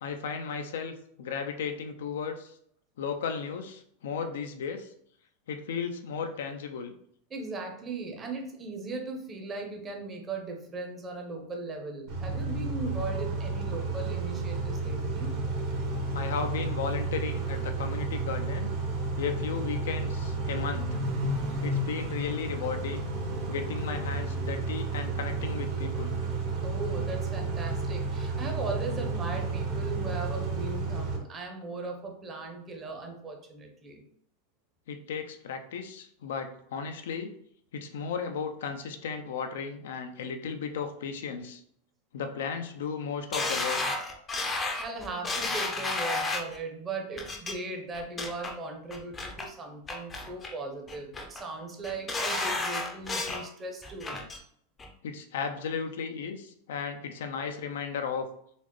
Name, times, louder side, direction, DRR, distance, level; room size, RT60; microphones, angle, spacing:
voice 1, 0.0-2.5 3.0-4.9 5.5-7.0 16.1-18.7 19.2-20.9 21.6-23.1 23.5-26.1 34.9-37.3 37.7-41.6 42.1-43.8 55.0-58.3, left 6 dB, 80° left, 6 dB, 0.4 m, -35 dB
voice 2, 7.3-15.3 26.6-34.0 44.3-54.2, right 3 dB, 25° right, 2 dB, 0.8 m, -38 dB
Car / Idling / Accelerating revving vroom, 12.1-31.2, right 3 dB, 50° right, 1.0 m, -31 dB
sound 1, 43.3-46.6 47.2-47.5 47.9-48.5 48.9-49.5 49.9-50.5 50.9-51.4 51.8-53.4 53.8-54.4 54.8-54.9, left 2 dB, 20° left, 0.5 m, -32 dB
4.0 x 2.1 x 3.0 m, 0.68 s
supercardioid pair, 125°, 0 cm